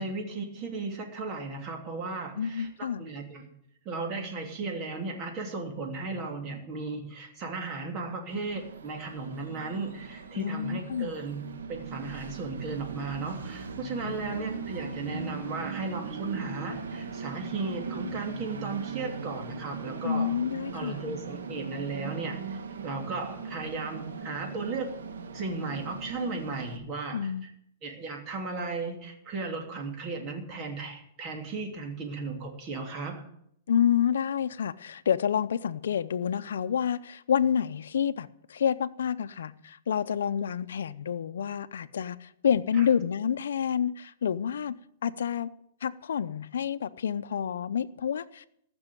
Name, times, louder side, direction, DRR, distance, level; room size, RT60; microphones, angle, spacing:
voice 1, 0.0-2.7 3.0-3.5 3.8-11.4 11.7-20.3 20.7-24.9 25.3-27.5 27.8-33.2 42.7-42.9, right 3 dB, 35° right, 2.9 m, -35 dB
voice 2, 2.4-3.0 10.3-11.1 14.1-14.2 20.0-21.0 27.1-27.5 33.7-44.7 45.0-45.5 45.8-48.5, left 8 dB, 85° left, 0.6 m, -28 dB
Train, 8.3-26.8, right 4 dB, 90° right, 1.5 m, -39 dB
14.5 x 6.2 x 9.2 m
hypercardioid pair, 140°, 0 cm